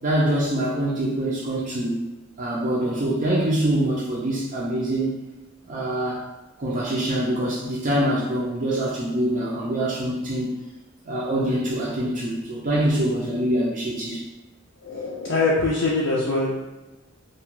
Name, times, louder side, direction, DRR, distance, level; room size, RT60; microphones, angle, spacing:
voice 1, 0.0-2.0 2.4-5.2 5.7-6.2 6.6-10.5 11.1-14.2, right 1 dB, 40° right, -6 dB, 0.4 m, -24 dB
voice 2, 14.8-16.5, left 3 dB, 65° left, -5 dB, 0.4 m, -23 dB
2.4 x 2.2 x 3.0 m, 1.1 s
head